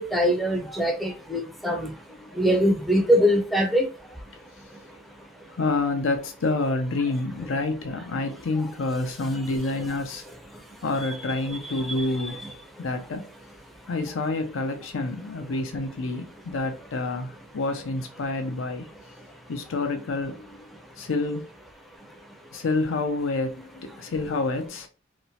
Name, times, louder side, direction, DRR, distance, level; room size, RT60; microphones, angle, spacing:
voice 1, 0.0-1.9 2.4-3.9, equal, ahead, 0.4 m, -22 dB
voice 2, 2.1-2.4 5.5-10.2 10.8-12.4 12.8-13.2 13.9-18.9 19.5-20.6 21.0-21.5 22.5-24.9, left 3 dB, 90° left, 0.6 m, -28 dB
2.8 x 2.1 x 2.7 m
head